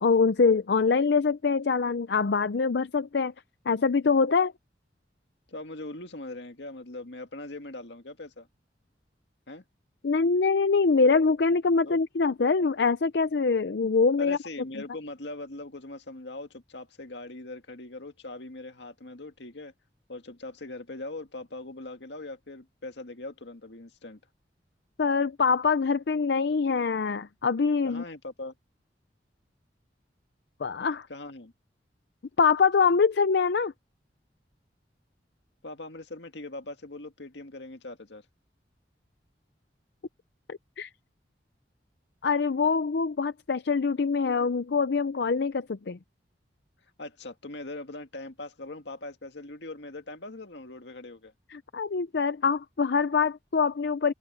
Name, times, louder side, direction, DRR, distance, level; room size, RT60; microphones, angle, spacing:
voice 1, 0.0-3.3 3.7-4.5 10.0-14.4 25.0-28.0 30.6-31.1 32.4-33.7 40.5-40.9 42.2-46.0 51.5-54.1, left 5 dB, 70° left, 0.5 m, -24 dB
voice 2, 5.5-8.5 9.5-9.6 11.8-12.0 14.2-19.7 20.1-24.2 27.8-28.5 31.1-31.5 35.6-38.3 47.0-51.3, left 2 dB, 90° left, 2.0 m, -41 dB
head